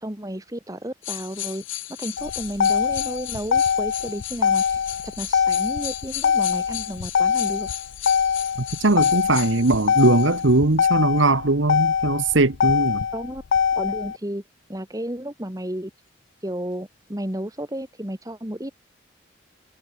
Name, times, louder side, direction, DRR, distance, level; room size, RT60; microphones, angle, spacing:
voice 1, 0.0-7.7 13.1-13.4 13.8-14.4 14.7-15.9 16.4-18.7, right 1 dB, 15° right, 1.9 m, -32 dB
sound 1, 1.0-10.6 11.2-11.3, left 15 dB, 80° left, 2.0 m, -36 dB
Motor vehicle (road), 2.2-14.2, left 7 dB, 60° left, 0.3 m, -23 dB
voice 2, 8.8-13.0, right 2 dB, 75° right, 1.4 m, -20 dB
head